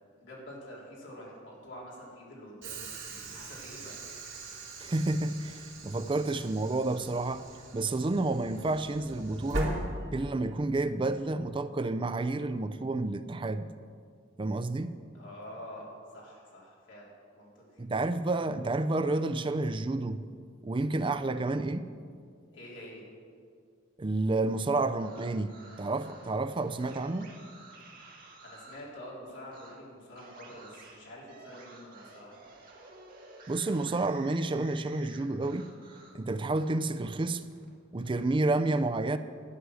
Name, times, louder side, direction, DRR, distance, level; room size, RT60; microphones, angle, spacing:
voice 1, 0.2-4.0 15.1-17.8 22.5-23.0 28.4-32.4, equal, 65° left, -4 dB, 3.6 m, -47 dB
Train / Sliding door, 2.6-10.6, right 1 dB, 75° right, 2.8 m, -40 dB
voice 2, 4.8-7.4 7.7-9.8 10.1-13.7 14.4-14.9 17.8-20.2 20.6-21.9 24.0-25.5 25.8-27.3 33.5-35.7 36.1-37.4 37.9-39.2, right 2 dB, 25° right, 11 dB, 0.4 m, -30 dB
sound 1, 24.9-28.9 29.5-29.7 30.1-36.2 36.5-38.2, right 3 dB, 45° right, 1.9 m, -53 dB
11.0 x 9.7 x 6.3 m, 2.1 s
head